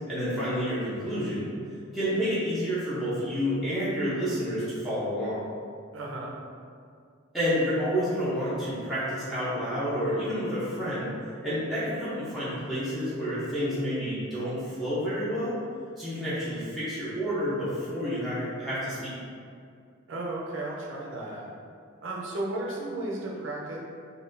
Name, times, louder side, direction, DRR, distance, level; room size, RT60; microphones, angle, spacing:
voice 1, 0.1-1.5 1.9-5.4 7.3-11.1 11.4-15.6 16.0-19.1, equal, ahead, -12 dB, 0.6 m, -29 dB
voice 2, 5.9-6.3 20.1-21.5 22.0-23.8, right 2 dB, 60° right, -3 dB, 0.6 m, -34 dB
3.9 x 2.3 x 2.6 m, 2.3 s
head